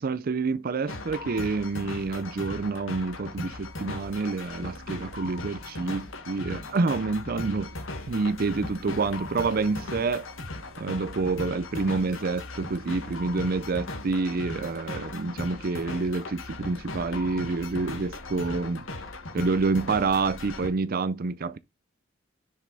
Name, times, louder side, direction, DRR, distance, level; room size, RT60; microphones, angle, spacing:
voice 1, 0.0-7.7 8.1-10.3 10.8-18.8 19.3-21.6, right 4 dB, 45° right, 0.5 m, -28 dB
sound 1, 0.9-20.7, left 2 dB, 80° left, 1.7 m, -38 dB
6.9 x 5.2 x 4.1 m
head